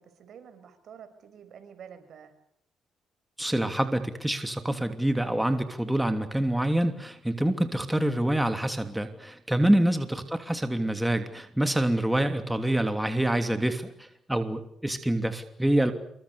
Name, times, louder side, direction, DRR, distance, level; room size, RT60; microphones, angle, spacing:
voice 1, 0.0-2.3 10.0-10.3, right 7 dB, 65° right, 10 dB, 6.0 m, -49 dB
voice 2, 3.4-15.9, right 1 dB, 5° right, 7 dB, 3.0 m, -26 dB
28.0 x 24.0 x 7.0 m, 0.71 s
cardioid pair, 90°, 0 cm